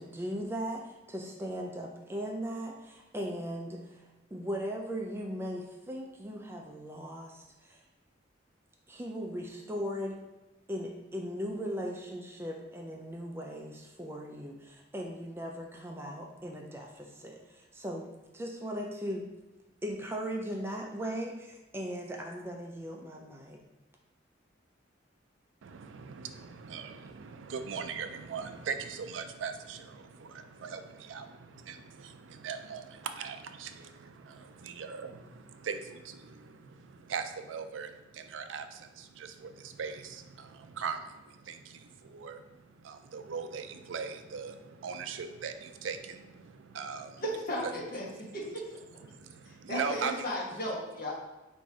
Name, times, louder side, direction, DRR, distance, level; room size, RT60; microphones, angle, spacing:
voice 1, 0.0-4.0 4.3-7.8 8.9-10.2 10.7-18.1 18.3-19.3 19.8-23.6, equal, 15° right, 0.3 m, -38 dB
voice 2, 25.6-47.2 49.0-50.3, right 6 dB, 85° right, 0.4 m, -40 dB
voice 3, 47.2-48.0 48.3-48.6 49.5-51.1, equal, 50° left, 1.3 m, -35 dB
4.1 x 2.6 x 4.7 m
head